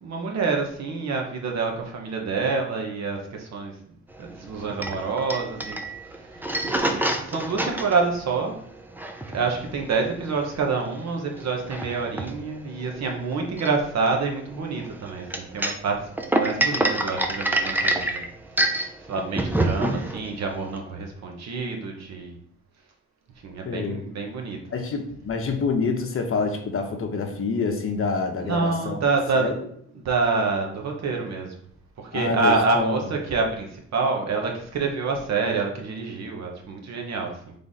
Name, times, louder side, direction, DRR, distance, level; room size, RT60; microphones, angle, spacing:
voice 1, 0.0-5.8 6.1-8.5 9.3-16.1 16.4-18.3 18.5-22.4 23.4-24.6 28.4-29.5 29.9-31.5 32.0-37.5, right 4 dB, 60° right, 2 dB, 1.0 m, -27 dB
sound 1, 4.1-20.8, right 1 dB, 5° right, 0.5 m, -28 dB
voice 2, 23.6-24.0 24.7-29.0 29.3-29.6 32.1-33.0, left 4 dB, 45° left, 4 dB, 0.8 m, -27 dB
3.6 x 3.4 x 4.1 m, 0.65 s
cardioid pair, 90°, 30 cm